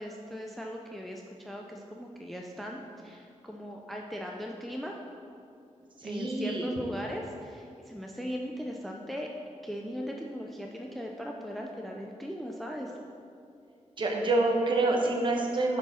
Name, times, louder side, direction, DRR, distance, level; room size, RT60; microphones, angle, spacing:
voice 1, 0.0-5.0 6.0-9.3 9.6-12.9, equal, ahead, 1 dB, 0.4 m, -38 dB
voice 2, 6.0-6.6 14.0-15.8, right 2 dB, 40° right, 0 dB, 1.0 m, -27 dB
9.9 x 4.6 x 4.3 m, 2.5 s
wide cardioid pair, 160°, 12 cm